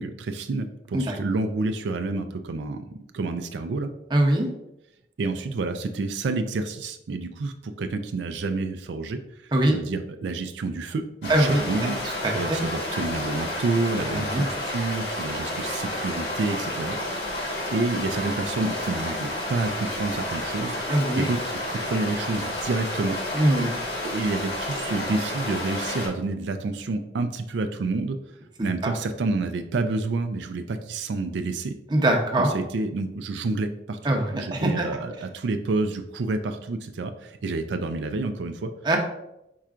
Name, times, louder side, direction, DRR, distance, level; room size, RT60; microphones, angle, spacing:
voice 1, 0.0-3.9 5.2-12.0 12.3-17.0 17.7-20.8 21.1-23.2 24.0-28.4 28.6-31.7 32.4-34.0 34.3-38.7, right 3 dB, 90° right, 7 dB, 0.4 m, -29 dB
voice 2, 4.1-4.5 9.5-9.8 11.3-12.6 14.1-14.4 20.9-21.3 23.3-23.7 28.8-28.9 31.9-32.5 34.0-34.9 38.8-39.0, right 1 dB, 25° right, 1 dB, 0.7 m, -23 dB
sound 1, 11.2-26.1, left 1 dB, 75° left, 1.7 m, -31 dB
4.7 x 4.3 x 2.4 m, 0.85 s
head